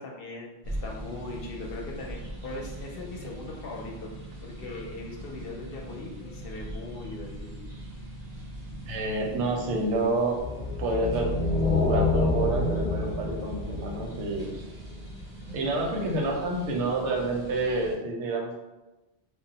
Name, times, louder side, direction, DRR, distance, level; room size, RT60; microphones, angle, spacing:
voice 1, 0.0-4.1 4.4-7.6, left 2 dB, 65° left, -1 dB, 0.7 m, -40 dB
sound 1, 0.6-17.9, equal, 45° right, 0.5 m, -41 dB
voice 2, 8.9-11.3 11.8-14.6 15.5-18.6, right 2 dB, 85° right, 0 dB, 0.9 m, -29 dB
sound 2, 10.4-14.8, left 2 dB, 5° left, 0.4 m, -27 dB
2.3 x 2.0 x 3.8 m, 1.1 s
omnidirectional pair, 1.1 m